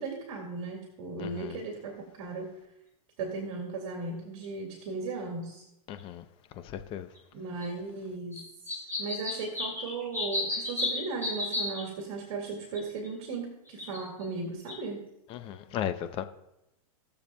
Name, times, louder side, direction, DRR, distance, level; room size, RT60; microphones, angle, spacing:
voice 1, 0.0-2.5 3.2-5.6 7.3-8.4 8.7-15.0, right 3 dB, 65° right, 2.0 m, -36 dB
sound 1, 4.4-4.5 6.0-6.1 7.2-7.3 7.6-7.7 8.3-11.8 12.7-13.1 13.7-14.2 14.7-14.8, left 2 dB, 10° left, 3.4 m, -33 dB
voice 2, 5.9-6.2 6.7-7.1 15.3-16.2, left 10 dB, 30° left, 0.6 m, -35 dB
19.5 x 6.9 x 2.2 m
supercardioid pair, 140°, 18 cm